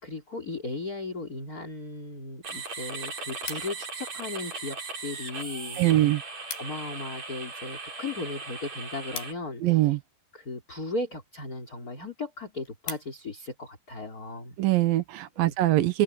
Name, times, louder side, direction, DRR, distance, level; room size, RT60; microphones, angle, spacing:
voice 1, 0.0-6.1 6.6-10.0 10.3-14.6 15.4-15.5, left 3 dB, 25° left, 3.9 m, -36 dB
sound 1, 2.4-9.3, right 4 dB, 45° right, 6.5 m, -38 dB
sound 2, 3.5-4.1 4.8-5.3 5.6-5.7 6.0-6.1 6.3-6.9 7.3-10.1 10.8-11.2 11.7-11.8 12.1-12.2 12.5-13.5 14.0-14.2, left 6 dB, 90° left, 6.7 m, -42 dB
voice 2, 5.8-6.2 9.6-10.0 14.6-16.0, right 15 dB, 75° right, 2.7 m, -22 dB
open air
omnidirectional pair, 4.3 m